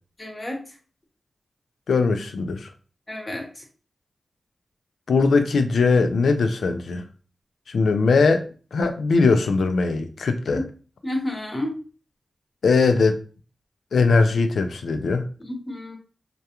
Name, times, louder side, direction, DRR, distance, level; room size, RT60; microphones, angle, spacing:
voice 1, 0.2-0.6 3.1-3.6 10.5-10.6 11.0-11.8 15.4-16.0, left 1 dB, 35° left, 2 dB, 0.8 m, -30 dB
voice 2, 1.9-2.7 5.1-7.0 7.7-8.4 8.7-10.6 12.6-13.2 13.9-15.3, left 4 dB, 80° left, 8 dB, 0.3 m, -20 dB
2.3 x 2.2 x 2.8 m, 0.38 s
cardioid pair, 45°, 0 cm